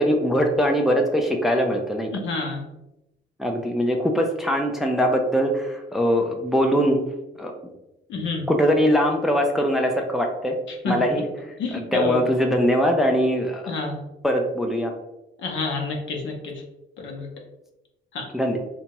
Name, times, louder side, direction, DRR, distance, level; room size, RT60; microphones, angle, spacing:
voice 1, 0.0-2.1 3.4-7.0 7.4-7.5 8.5-10.6 10.9-11.2 11.7-13.7 14.2-14.9 18.3-18.6, equal, ahead, 2 dB, 0.3 m, -22 dB
voice 2, 2.2-2.6 8.1-8.4 10.7-11.0 11.6-12.2 13.7-14.0 15.4-16.6 17.0-17.3 18.1-18.3, left 3 dB, 70° left, 1 dB, 0.7 m, -28 dB
2.8 x 2.2 x 2.9 m, 0.92 s
cardioid pair, 90°, 20 cm